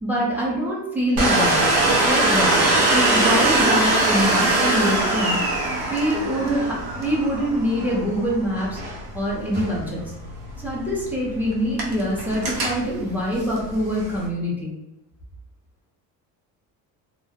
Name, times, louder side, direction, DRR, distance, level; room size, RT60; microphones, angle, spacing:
voice 1, 0.0-1.6 2.0-2.6 2.9-5.4 5.9-8.8 9.1-10.0 10.6-14.7, equal, 5° right, -5 dB, 0.6 m, -24 dB
Domestic sounds home sounds, 1.2-14.3, right 2 dB, 80° right, 0.7 m, -23 dB
2.3 x 2.0 x 2.7 m, 0.94 s
cardioid pair, 145°, 38 cm